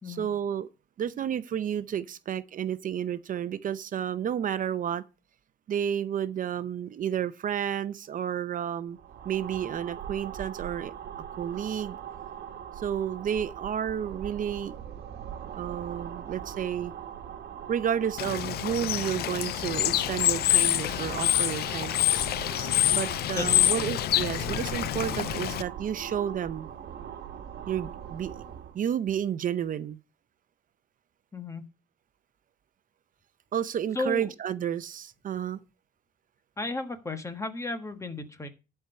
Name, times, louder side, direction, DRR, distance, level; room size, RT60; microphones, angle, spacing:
voice 1, 0.1-0.7 1.0-5.0 5.7-9.0 9.2-10.9 11.4-12.0 12.8-14.8 15.6-16.9 17.7-22.3 22.9-26.7 27.7-28.4 28.7-30.0 33.5-35.6, right 9 dB, 55° right, 0.7 m, -31 dB
sound 1, 8.9-28.8, right 9 dB, 80° right, 1.2 m, -41 dB
Bird / Water, 18.2-25.6, left 14 dB, 75° left, 0.4 m, -26 dB
voice 2, 23.3-23.9 31.3-31.6 33.9-34.3 36.6-38.5, left 2 dB, 15° left, 1.4 m, -34 dB
11.5 x 4.6 x 6.7 m
cardioid pair, 135°, 17 cm